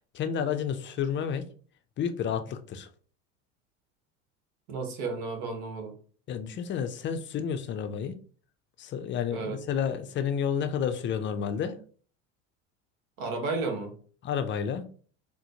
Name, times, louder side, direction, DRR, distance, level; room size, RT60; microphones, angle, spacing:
voice 1, 0.1-1.5 2.0-2.9 6.3-8.2 8.8-11.8 14.2-14.8, left 7 dB, 30° left, 0.5 m, -30 dB
voice 2, 4.7-6.0 9.3-9.6 13.2-13.9, right 3 dB, 70° right, 1.2 m, -33 dB
4.0 x 2.1 x 2.8 m
hypercardioid pair, 85°, 38 cm